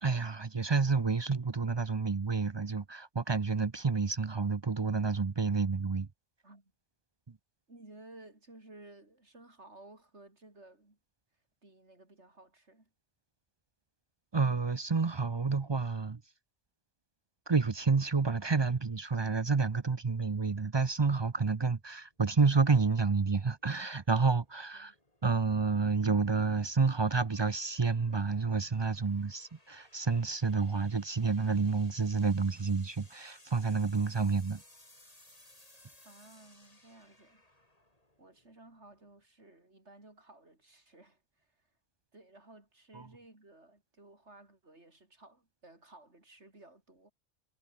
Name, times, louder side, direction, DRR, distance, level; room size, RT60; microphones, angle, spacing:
voice 1, 0.0-6.1 7.3-7.4 14.3-16.2 17.5-24.9 25.2-34.6 42.9-43.1, right 4 dB, 30° right, 0.5 m, -29 dB
voice 2, 7.7-11.0 11.6-12.9 24.7-25.0 36.0-37.4 38.2-41.5 42.1-47.1, right 2 dB, 65° right, 5.4 m, -56 dB
sound 1, 20.5-39.2, left 1 dB, 30° left, 4.7 m, -63 dB
omnidirectional pair, 1.3 m